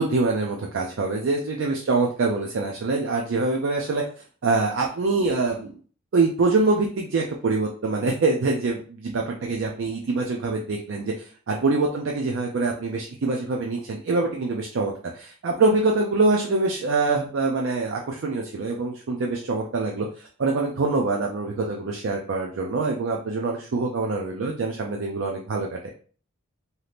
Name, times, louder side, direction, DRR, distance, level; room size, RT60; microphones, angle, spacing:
voice 1, 0.0-4.0 4.4-5.7 6.1-25.9, right 3 dB, 70° right, 1 dB, 0.4 m, -25 dB
3.3 x 2.7 x 2.4 m, 0.42 s
head